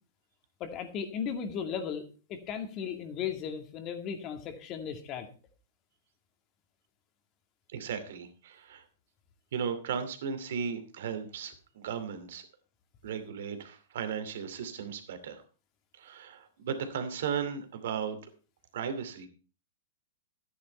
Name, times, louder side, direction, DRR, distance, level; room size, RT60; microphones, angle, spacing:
voice 1, 0.6-2.0 2.3-5.3, left 7 dB, 35° left, 7 dB, 2.2 m, -36 dB
voice 2, 7.7-8.8 9.5-12.5 13.0-15.4 15.9-18.2 18.7-19.3, right 7 dB, 65° right, 8 dB, 2.6 m, -36 dB
12.5 x 9.9 x 4.4 m, 0.35 s
hypercardioid pair, 115°, 0 cm